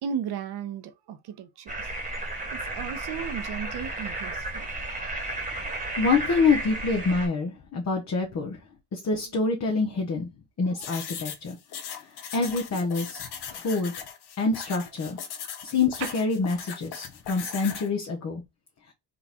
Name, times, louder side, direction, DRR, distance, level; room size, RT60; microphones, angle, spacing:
voice 1, 0.0-0.8 1.1-1.7 2.5-4.7 16.0-16.1, right 8 dB, 65° right, 0.9 m, -35 dB
sound 1, 1.7-7.3, right 2 dB, 20° right, 1.4 m, -33 dB
voice 2, 6.0-8.6 8.9-10.3 10.6-11.6 12.3-13.2 13.5-14.0 14.4-15.2 15.6-18.4, left 4 dB, 40° left, 1.0 m, -26 dB
sound 2, 10.8-17.9, left 8 dB, 65° left, 1.0 m, -39 dB
3.8 x 2.4 x 4.2 m
cardioid pair, 100°, 42 cm